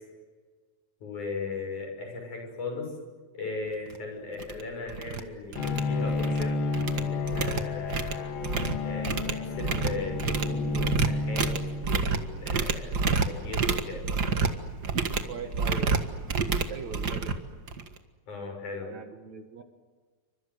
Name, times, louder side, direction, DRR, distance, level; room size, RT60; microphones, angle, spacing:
voice 1, 1.0-2.9 3.3-8.3 8.8-11.5 11.8-14.0 18.3-18.9, left 3 dB, 60° left, 2 dB, 8.0 m, -37 dB
sound 1, 3.9-4.0 4.4-4.6 4.9-5.2 5.5-6.4 6.7-18.0, right 4 dB, 40° right, 1.5 m, -29 dB
Bowed string instrument, 5.6-12.2, left 3 dB, 85° left, 3.9 m, -31 dB
voice 2, 15.3-16.0 16.7-17.7 18.8-19.6, right 5 dB, 60° right, 7 dB, 2.8 m, -41 dB
29.0 x 25.5 x 8.0 m, 1.4 s
omnidirectional pair, 4.0 m